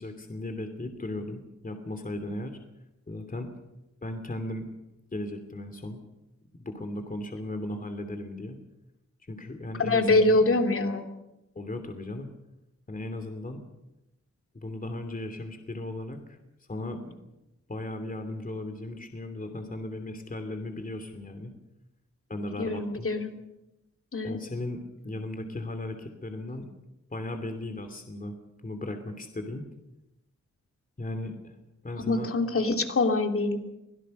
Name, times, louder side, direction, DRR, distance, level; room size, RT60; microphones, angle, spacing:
voice 1, 0.0-2.6 3.1-3.5 4.0-4.6 5.1-6.0 6.5-8.6 9.3-10.4 11.5-12.3 12.9-13.6 14.5-16.4 16.7-17.2 17.7-21.5 22.3-23.1 24.2-26.6 27.1-28.4 28.6-29.6 31.0-31.6 31.8-32.3, left 1 dB, 30° left, 6 dB, 2.9 m, -36 dB
voice 2, 9.8-11.0 22.6-23.3 24.1-24.4 32.1-33.6, left 2 dB, 50° left, 5 dB, 2.9 m, -24 dB
25.0 x 17.0 x 6.6 m, 0.93 s
cardioid pair, 75°, 29 cm